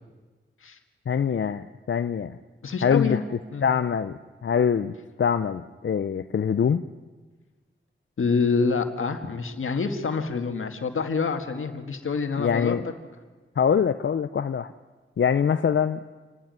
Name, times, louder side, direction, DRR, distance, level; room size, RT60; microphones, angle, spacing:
voice 1, 1.1-2.4 2.8-3.2 3.6-6.8 12.4-12.8 13.6-14.7 15.2-16.0, left 7 dB, 65° left, 10 dB, 0.6 m, -24 dB
voice 2, 2.6-3.2 3.5-3.7 8.2-12.8, left 5 dB, 90° left, 6 dB, 1.8 m, -26 dB
28.0 x 12.0 x 9.6 m, 1.3 s
wide cardioid pair, 95°, 20 cm